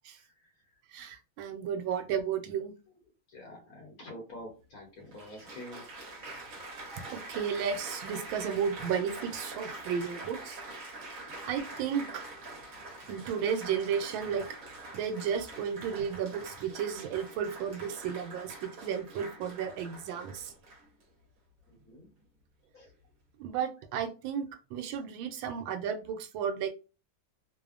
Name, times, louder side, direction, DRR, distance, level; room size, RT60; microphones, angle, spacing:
voice 1, 0.4-0.8 2.9-3.0 3.3-5.8 21.7-22.1 22.7-22.9, left 1 dB, 60° left, 0 dB, 1.1 m, -47 dB
voice 2, 0.9-2.7 7.1-10.6 11.4-12.2 13.1-14.4 14.9-20.5 23.4-24.5 24.7-26.7, right 7 dB, 85° right, 6 dB, 1.3 m, -33 dB
Applause, 4.3-4.4 5.1-21.0 21.8-22.1, right 2 dB, 50° right, 1.3 m, -45 dB
3.3 x 2.0 x 2.4 m, 0.33 s
omnidirectional pair, 2.1 m